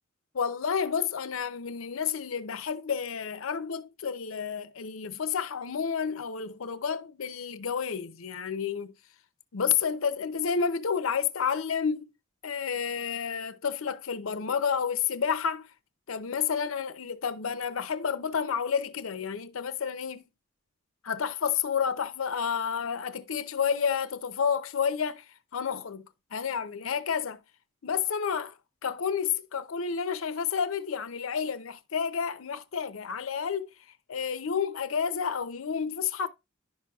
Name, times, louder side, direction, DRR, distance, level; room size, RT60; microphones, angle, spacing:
voice 1, 0.3-8.9 9.5-12.1 12.4-15.7 16.1-20.2 21.0-25.2 25.5-27.4 27.8-28.5 28.8-33.7 34.1-36.3, left 7 dB, 75° left, 0.6 m, -30 dB
10.5 x 6.1 x 2.3 m
head